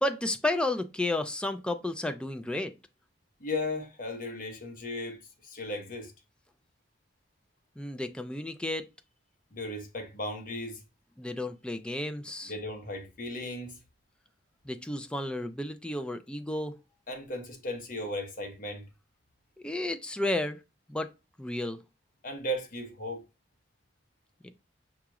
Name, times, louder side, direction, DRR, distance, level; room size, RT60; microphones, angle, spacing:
voice 1, 0.0-2.7 7.8-8.8 11.2-12.5 14.6-16.8 19.6-20.6 20.9-21.1 21.4-21.8 24.4-24.5, left 1 dB, 5° left, 0.3 m, -32 dB
voice 2, 3.4-6.1 9.5-10.8 12.5-13.8 17.1-18.9 22.2-23.2, left 1 dB, 50° left, 0.9 m, -36 dB
5.8 x 2.4 x 2.9 m
head